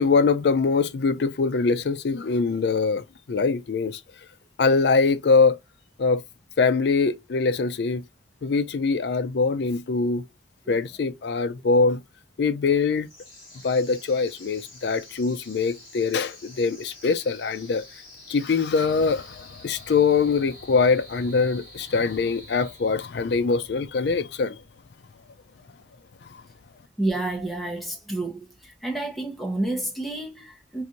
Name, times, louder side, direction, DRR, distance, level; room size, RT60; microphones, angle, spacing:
voice 1, 0.0-3.0 3.3-4.0 4.6-5.6 6.0-6.2 6.6-8.0 8.4-10.2 10.7-12.0 12.4-13.1 13.6-17.8 18.3-24.6, left 4 dB, 65° left, 0.4 m, -23 dB
sound 1, 13.0-23.3, left 1 dB, 20° left, 2.4 m, -48 dB
voice 2, 27.0-30.8, right 2 dB, ahead, 0.9 m, -29 dB
4.0 x 2.5 x 2.8 m
head